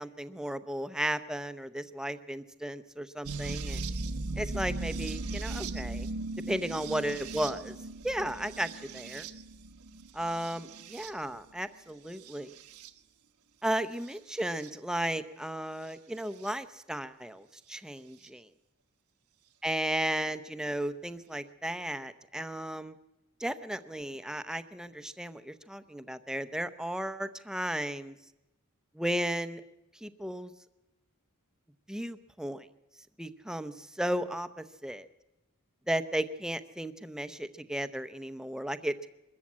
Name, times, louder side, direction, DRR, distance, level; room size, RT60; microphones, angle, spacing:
voice 1, 0.0-3.9 4.4-6.1 6.5-7.8 8.0-9.3 10.1-12.5 13.6-18.5 19.6-23.0 23.4-28.2 28.9-29.6 29.9-30.5 31.9-32.7 33.2-35.1 35.9-39.1, right 1 dB, 5° right, 11 dB, 0.7 m, -34 dB
sound 1, 3.2-11.4 12.1-12.9 14.1-14.7 16.4-16.5 18.2-18.3, right 2 dB, 85° right, 1.1 m, -38 dB
23.0 x 13.5 x 8.5 m, 0.94 s
head